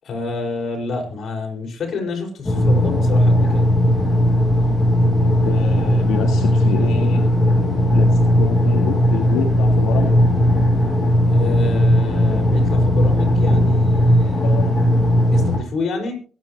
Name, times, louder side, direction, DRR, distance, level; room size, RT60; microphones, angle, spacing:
voice 1, 0.0-3.7 11.3-14.5 15.3-16.1, left 4 dB, 60° left, 1 dB, 5.4 m, -28 dB
sound 1, 2.4-15.6, equal, 20° left, 6.7 m, -17 dB
voice 2, 5.2-7.2 7.8-10.2 14.4-14.7, left 7 dB, 90° left, 3 dB, 1.6 m, -28 dB
23.0 x 9.1 x 3.0 m, 0.40 s
cardioid pair, 90°, 0 cm